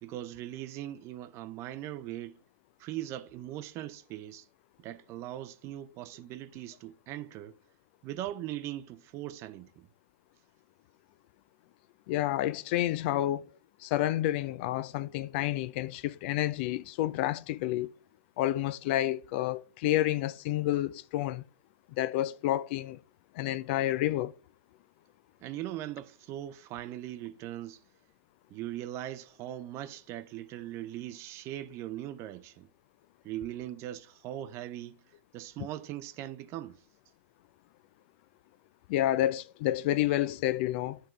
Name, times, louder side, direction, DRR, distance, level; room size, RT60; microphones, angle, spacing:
voice 1, 0.0-2.4 2.8-4.5 4.8-7.6 8.0-9.9 25.4-27.8 28.5-32.7 33.2-35.0 35.3-36.8, right 13 dB, 40° right, 0.5 m, -40 dB
voice 2, 12.1-13.5 13.8-17.9 18.4-21.4 22.0-23.0 23.3-24.3 38.9-41.0, left 14 dB, 50° left, 0.4 m, -29 dB
10.5 x 3.8 x 3.0 m
hypercardioid pair, 110°, 7 cm